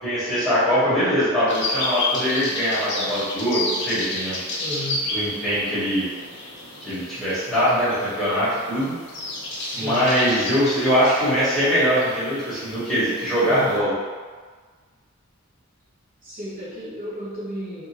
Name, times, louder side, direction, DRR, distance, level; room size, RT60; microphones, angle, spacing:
voice 1, 0.0-4.4 5.1-6.1 6.8-8.9 9.7-13.9, equal, ahead, -13 dB, 1.1 m, -22 dB
sound 1, 1.5-13.8, left 2 dB, 55° left, 0.6 m, -31 dB
voice 2, 4.6-5.0 9.5-10.0 13.4-13.7 16.2-17.9, left 1 dB, 40° right, -9 dB, 0.6 m, -33 dB
2.7 x 2.4 x 2.9 m, 1.5 s
head